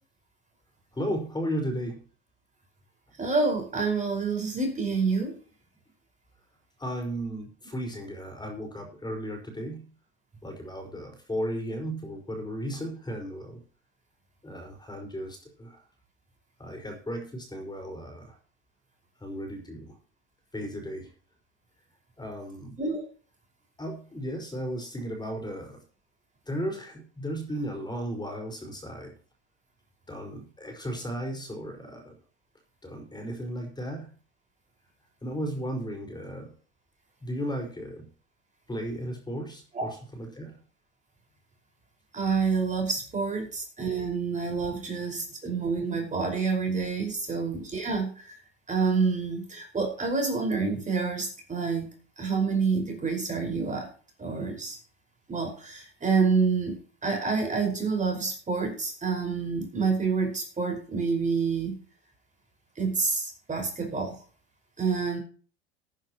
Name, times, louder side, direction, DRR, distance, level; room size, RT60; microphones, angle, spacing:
voice 1, 0.9-2.0 5.6-5.8 6.8-9.9 10.4-13.6 14.4-15.8 16.6-18.4 19.2-20.0 20.5-21.1 22.2-22.8 23.8-25.8 26.5-29.1 30.1-32.1 32.8-34.1 35.2-36.5 37.2-38.1 38.7-40.6 44.8-45.4 47.1-47.4, equal, 10° left, 3 dB, 5.1 m, -35 dB
voice 2, 3.2-5.4 22.8-23.0 39.7-39.9 42.1-48.3 48.7-51.9 52.2-53.9 54.2-54.8 55.3-61.8 62.8-64.1 64.8-65.2, right 4 dB, 20° right, 3 dB, 5.3 m, -28 dB
17.5 x 10.5 x 3.0 m, 0.40 s
hypercardioid pair, 85°, 35 cm